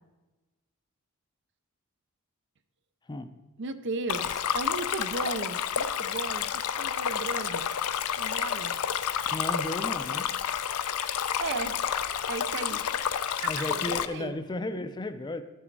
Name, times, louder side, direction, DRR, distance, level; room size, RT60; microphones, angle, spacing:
voice 1, 3.6-7.7 8.2-8.7 11.4-11.8 12.3-14.3, right 3 dB, 55° right, 11 dB, 0.5 m, -36 dB
Stream, 4.1-14.1, left 8 dB, 80° left, 0.5 m, -30 dB
voice 2, 9.3-10.3 13.4-15.4, left 1 dB, 20° left, 10 dB, 0.4 m, -34 dB
12.0 x 6.2 x 4.6 m, 1.1 s
head